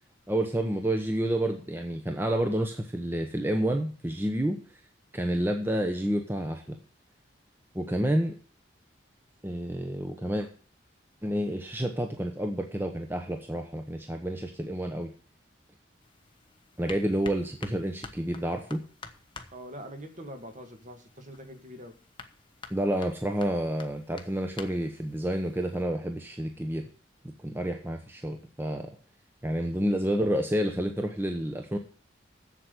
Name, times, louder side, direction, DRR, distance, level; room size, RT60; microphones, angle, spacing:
voice 1, 0.3-4.6 5.1-6.8 7.7-8.3 9.4-10.5 11.2-15.1 16.8-18.8 22.7-26.8 27.2-28.9 29.4-31.8, right 1 dB, 10° right, 4 dB, 1.0 m, -29 dB
sound 1, 16.0-25.8, left 4 dB, 25° left, 1.1 m, -49 dB
voice 2, 19.5-21.9, equal, 40° right, 5 dB, 2.0 m, -43 dB
7.9 x 7.7 x 8.3 m, 0.42 s
head